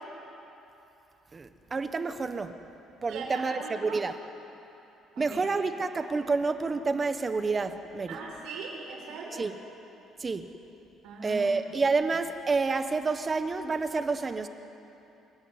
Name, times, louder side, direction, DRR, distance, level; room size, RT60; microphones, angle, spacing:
voice 1, 1.3-2.6 3.0-4.1 5.2-8.1 9.4-9.5 10.2-10.5 11.2-14.5, right 4 dB, 25° right, 9 dB, 1.0 m, -29 dB
voice 2, 3.1-4.0 5.2-5.5 8.1-9.5 11.0-11.8, right 4 dB, 80° right, -1 dB, 6.9 m, -40 dB
28.0 x 14.5 x 9.6 m, 2.8 s
cardioid pair, 140°, 0 cm